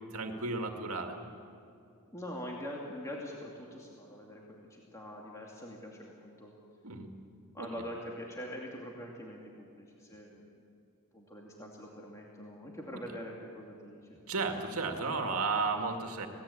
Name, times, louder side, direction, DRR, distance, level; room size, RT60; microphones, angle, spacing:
voice 1, 0.1-1.2 6.8-7.1 7.6-7.7 14.3-16.3, right 4 dB, 75° right, 4 dB, 2.1 m, -33 dB
voice 2, 2.1-6.5 7.5-10.7 11.1-14.6, equal, 15° left, -2 dB, 2.5 m, -44 dB
26.0 x 18.0 x 8.6 m, 2.6 s
head